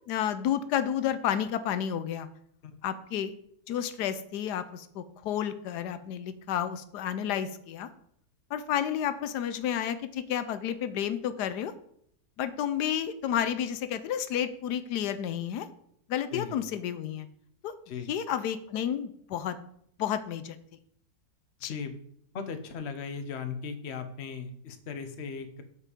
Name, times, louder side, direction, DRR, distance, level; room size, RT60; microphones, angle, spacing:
voice 1, 0.1-2.3 2.8-3.3 3.7-7.9 8.5-11.7 12.4-15.7 16.1-17.3 17.6-17.7 18.1-19.6 20.0-20.6 21.6-21.8, left 9 dB, 85° left, 12 dB, 1.2 m, -31 dB
voice 2, 21.6-22.0 22.3-25.6, left 6 dB, 50° left, 8 dB, 1.1 m, -37 dB
7.4 x 6.9 x 5.0 m, 0.68 s
omnidirectional pair, 1.7 m